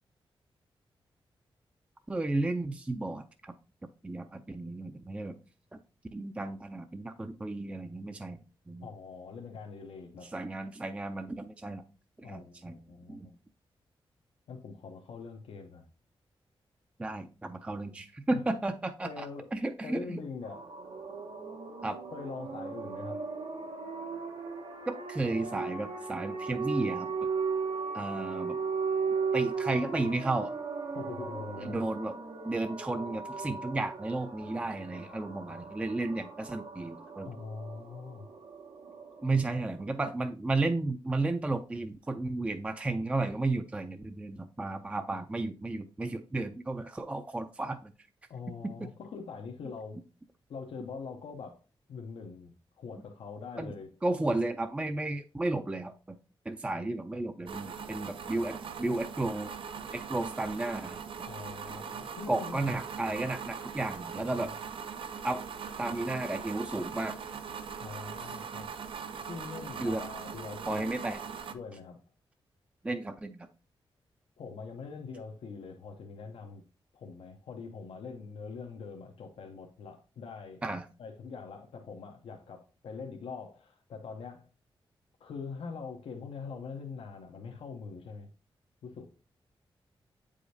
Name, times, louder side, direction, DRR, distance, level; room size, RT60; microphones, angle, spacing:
voice 1, 2.1-3.5 4.0-5.4 5.7-5.8 6.1-8.4 8.7-8.9 10.2-11.8 12.2-12.8 13.1-13.3 17.0-20.2 21.8-22.0 24.9-27.1 27.9-28.6 29.3-30.5 31.7-32.2 32.4-37.3 39.2-47.9 48.6-48.7 53.6-53.7 54.0-56.2 56.5-59.5 59.9-61.0 62.3-64.5 65.2-65.4 65.8-67.2 68.2-68.3 69.8-70.0 70.7-71.2 72.8-73.5 80.6-80.9, right 2 dB, 15° right, 0.4 m, -33 dB
voice 2, 8.8-10.3 12.2-13.4 14.5-15.9 18.3-18.4 19.0-19.5 19.8-20.6 22.1-23.2 30.9-31.8 37.3-38.3 48.3-50.0 50.5-51.6 51.9-53.9 61.3-62.7 64.4-64.5 67.8-68.7 69.3-71.0 71.5-72.0 74.4-76.6 76.9-80.6 81.0-84.5 85.2-88.3 88.8-89.1, left 5 dB, 90° left, 0.7 m, -43 dB
sound 1, 20.4-39.8, right 5 dB, 80° right, 1.2 m, -37 dB
sound 2, 57.5-71.5, right 6 dB, 65° right, 0.5 m, -41 dB
7.7 x 4.9 x 2.7 m
wide cardioid pair, 100°, 10 cm